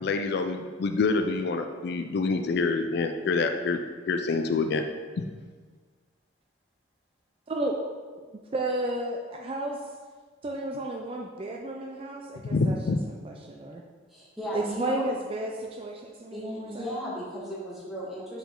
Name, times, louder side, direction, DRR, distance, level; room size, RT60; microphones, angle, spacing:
voice 1, 0.0-3.8 4.1-4.8 5.2-5.3 12.5-13.0, left 3 dB, 60° left, 7 dB, 0.4 m, -26 dB
voice 2, 7.5-7.8 8.5-9.8 10.4-12.8 13.1-13.8 14.5-16.9, right 1 dB, 30° right, 1 dB, 0.4 m, -32 dB
voice 3, 14.1-15.1 16.3-18.4, equal, ahead, -8 dB, 1.5 m, -35 dB
5.1 x 5.0 x 3.7 m, 1.5 s
head